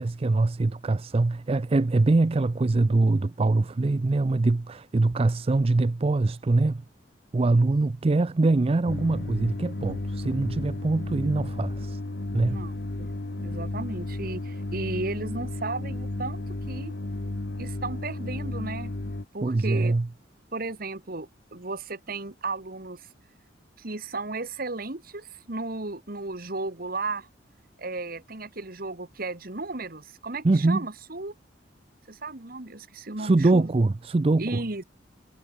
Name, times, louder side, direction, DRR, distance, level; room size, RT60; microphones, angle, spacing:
voice 1, 0.0-6.8 7.3-12.0 12.3-12.6 19.4-20.1 30.4-30.8 33.2-34.6, right 2 dB, 30° right, 0.4 m, -23 dB
sound 1, 8.9-19.3, left 2 dB, 60° left, 1.1 m, -33 dB
voice 2, 12.5-16.9 17.6-18.9 19.3-20.0 20.5-23.1 23.8-27.3 27.8-31.3 32.1-33.7 34.4-34.8, right 3 dB, 50° right, 1.9 m, -35 dB
head